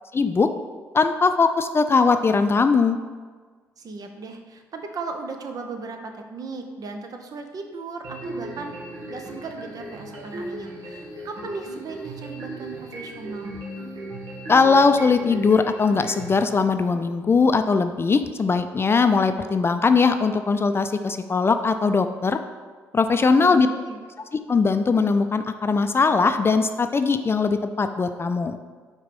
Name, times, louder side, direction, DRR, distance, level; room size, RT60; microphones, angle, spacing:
voice 1, 0.1-0.5 0.9-3.0 14.5-22.4 22.9-23.7 24.5-28.6, left 4 dB, 30° left, 9 dB, 0.4 m, -20 dB
voice 2, 3.8-13.5 23.2-24.0, right 4 dB, 50° right, 5 dB, 0.8 m, -36 dB
sound 1, 8.0-16.3, right 2 dB, 75° right, 1.8 m, -37 dB
4.8 x 4.5 x 5.3 m, 1.5 s
hypercardioid pair, 55°, 8 cm